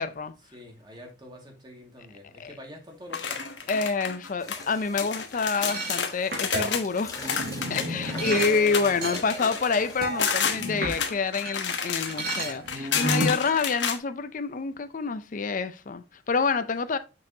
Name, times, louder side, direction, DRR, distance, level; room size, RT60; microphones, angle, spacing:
voice 1, 0.0-0.3 2.4-2.5 3.7-7.3 7.7-17.0, left 4 dB, 45° left, 0.5 m, -27 dB
voice 2, 0.5-3.7 8.1-9.1, right 1 dB, 25° right, 2.1 m, -44 dB
sound 1, 3.1-4.6 5.0-14.0, left 7 dB, 80° left, 1.1 m, -31 dB
sound 2, 4.4-10.7, left 1 dB, 20° left, 1.4 m, -43 dB
sound 3, 5.5-11.6 11.9-13.6, right 1 dB, 55° right, 2.1 m, -32 dB
6.6 x 6.2 x 2.8 m
head